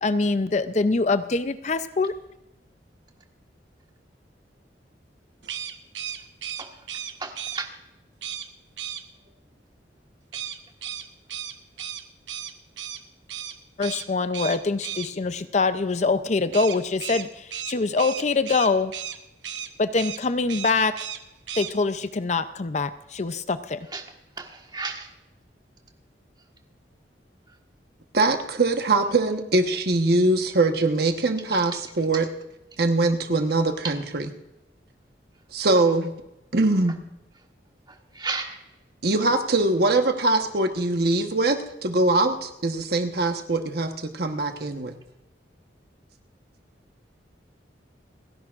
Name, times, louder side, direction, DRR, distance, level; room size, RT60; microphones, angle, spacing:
voice 1, 0.0-2.1 13.8-18.9 19.8-21.0 21.6-23.9, left 3 dB, 40° left, 12 dB, 0.5 m, -24 dB
sound 1, 5.4-7.6 8.2-8.5 8.8-9.0 10.3-13.0 13.3-13.5 13.8-14.1 14.3-15.1 16.5-19.2 19.4-19.7 20.0-20.2 20.5-21.2 21.5-21.7, right 9 dB, 90° right, 1.0 m, -34 dB
voice 2, 7.2-7.7 23.9-24.0 24.4-25.1 38.1-38.6, right 4 dB, 25° right, 3 dB, 1.5 m, -32 dB
voice 3, 28.1-32.3 32.8-34.3 35.5-36.1 36.5-37.0 39.0-44.9, right 2 dB, 60° right, 6 dB, 1.2 m, -22 dB
29.5 x 10.5 x 2.5 m, 0.91 s
head